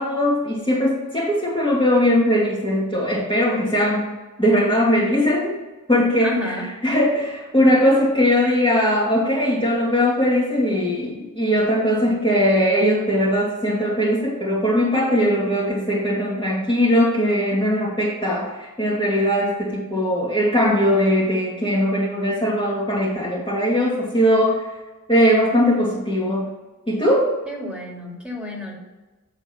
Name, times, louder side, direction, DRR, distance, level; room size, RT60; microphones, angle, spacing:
voice 1, 0.0-4.1 4.4-5.5 5.9-6.5 6.8-24.7 25.1-26.5 26.9-27.3, equal, 15° left, -7 dB, 1.9 m, -20 dB
voice 2, 6.2-6.7 27.5-28.7, left 1 dB, 5° right, -4 dB, 2.4 m, -31 dB
8.5 x 3.5 x 5.9 m, 1.2 s
wide cardioid pair, 80°, 34 cm